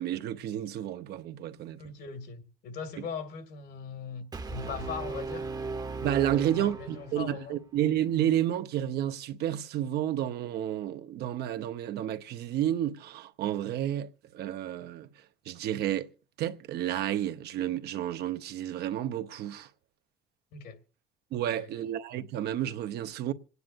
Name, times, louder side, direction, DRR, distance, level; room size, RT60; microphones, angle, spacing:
voice 1, 0.0-1.9 6.0-15.1 15.5-16.1 16.4-19.7 21.3-23.3, right 11 dB, 75° right, 0.9 m, -31 dB
voice 2, 1.8-5.5 6.3-7.6 20.5-20.8 21.4-21.7, left 5 dB, 70° left, 2.1 m, -40 dB
Brass instrument, 4.3-7.4, right 3 dB, 20° right, 0.9 m, -37 dB
27.5 x 9.5 x 2.6 m
cardioid pair, 110°, 17 cm